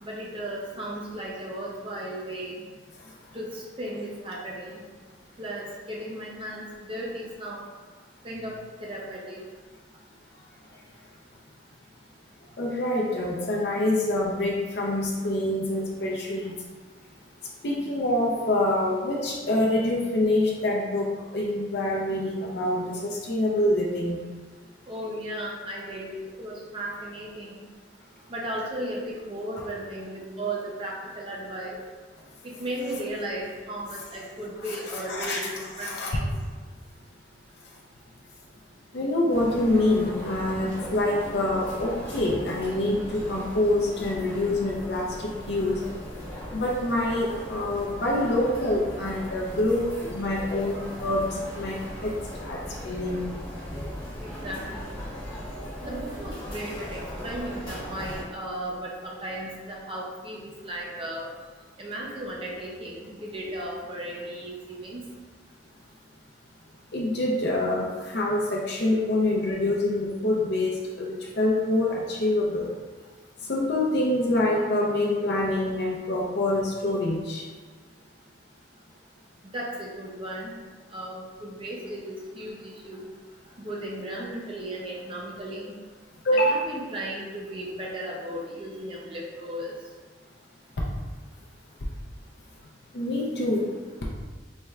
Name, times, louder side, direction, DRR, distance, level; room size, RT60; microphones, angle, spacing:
voice 1, 0.0-2.5 3.3-4.8 5.4-7.6 8.2-9.4 24.9-26.1 26.4-27.6 28.3-31.8 32.4-36.3 54.2-55.0 55.8-61.2 61.8-65.1 79.5-80.5 80.9-83.0 83.6-85.7 86.3-89.7, right 1 dB, 30° right, -3 dB, 0.5 m, -35 dB
voice 2, 12.6-16.5 17.6-24.2 34.6-35.4 35.8-36.2 38.9-45.8 46.5-53.2 66.9-72.7 73.5-77.5 86.2-86.6 92.9-93.7, left 1 dB, 65° left, -3 dB, 0.5 m, -26 dB
sound 1, 39.3-58.2, equal, 25° left, 1.3 m, -38 dB
4.3 x 3.1 x 2.3 m, 1.4 s
head